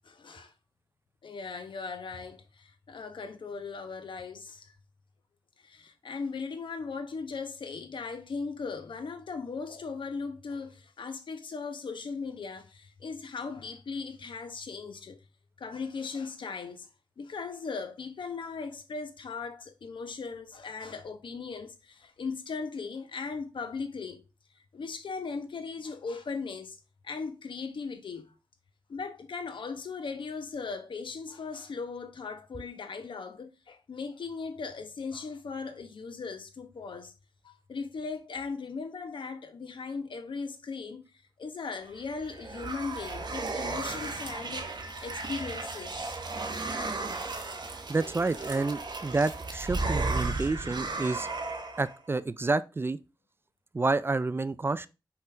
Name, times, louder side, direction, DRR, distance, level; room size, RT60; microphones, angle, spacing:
voice 1, 0.0-0.5 1.2-4.8 5.6-15.2 15.6-16.9 17.2-24.3 24.7-26.8 27.0-28.3 28.9-37.1 37.4-41.0 41.4-44.7 45.0-46.1 46.4-46.6 48.4-48.7, left 4 dB, 75° left, 0.9 m, -38 dB
sound 1, 42.0-52.0, right 3 dB, 60° right, 1.0 m, -34 dB
voice 2, 47.9-51.3 51.8-53.0 53.7-54.9, right 3 dB, 30° right, 0.3 m, -29 dB
5.6 x 5.2 x 3.3 m
wide cardioid pair, 110°, 8 cm